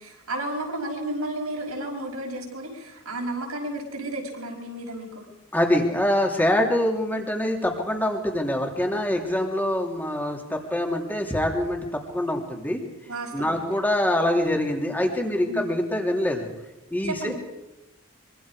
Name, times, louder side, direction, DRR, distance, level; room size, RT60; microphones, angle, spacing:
voice 1, 0.0-5.3 13.1-13.7 15.5-15.7 17.0-17.3, right 1 dB, 85° right, 2 dB, 5.9 m, -32 dB
voice 2, 5.5-12.8 13.3-16.5 16.9-17.3, left 1 dB, 10° left, 2 dB, 3.1 m, -25 dB
24.5 x 24.5 x 5.1 m, 0.95 s
head